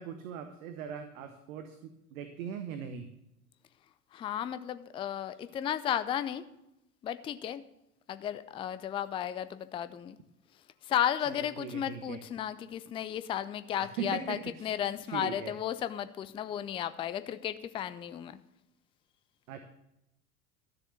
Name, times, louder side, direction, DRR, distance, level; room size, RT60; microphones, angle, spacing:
voice 1, 0.0-3.1 11.3-12.2 13.8-14.7 15.1-15.5 19.5-19.6, right 8 dB, 60° right, 7 dB, 1.3 m, -40 dB
voice 2, 4.1-6.4 7.0-7.6 8.1-10.2 10.8-18.4, left 10 dB, 15° left, 13 dB, 0.4 m, -34 dB
12.5 x 7.0 x 6.6 m, 0.86 s
figure-of-eight pair, 75°, 46 cm